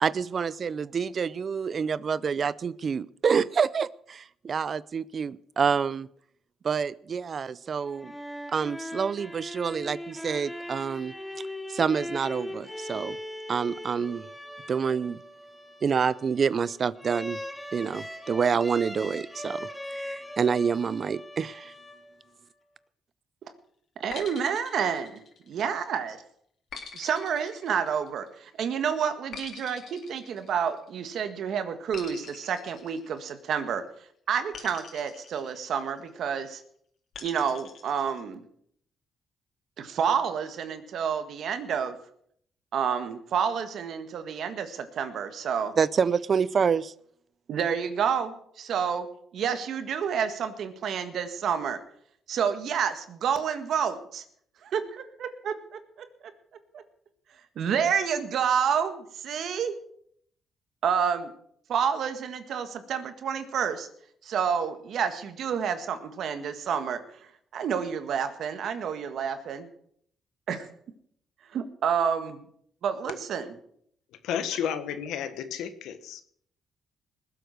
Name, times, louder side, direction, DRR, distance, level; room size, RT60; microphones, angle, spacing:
voice 1, 0.0-6.1 6.6-8.1 8.5-11.1 11.7-13.2 13.5-14.2 14.7-15.2 15.8-17.4 17.7-21.7 45.8-46.9, right 6 dB, 45° right, 20 dB, 0.5 m, -27 dB
sound 1, 7.8-22.4, left 1 dB, 10° left, 1.7 m, -40 dB
voice 2, 24.0-25.2 25.5-26.2 26.9-33.8 34.3-36.6 37.2-38.4 39.8-42.0 42.7-45.7 47.5-49.1 49.3-51.8 52.3-54.2 54.6-56.1 56.7-56.8 57.6-59.7 60.8-61.3 61.7-63.9 64.2-67.0 67.5-69.7 70.5-70.7 71.5-72.4 72.8-73.5, right 7 dB, 70° right, 9 dB, 1.7 m, -29 dB
sound 2, 24.1-25.8 26.7-28.4 29.3-31.0 31.9-33.7 34.5-36.1 37.1-38.2, left 5 dB, 60° left, 3.4 m, -45 dB
voice 3, 74.2-76.2, left 9 dB, 85° left, 10 dB, 1.4 m, -32 dB
20.0 x 8.0 x 6.5 m, 0.66 s
cardioid pair, 90°, 0 cm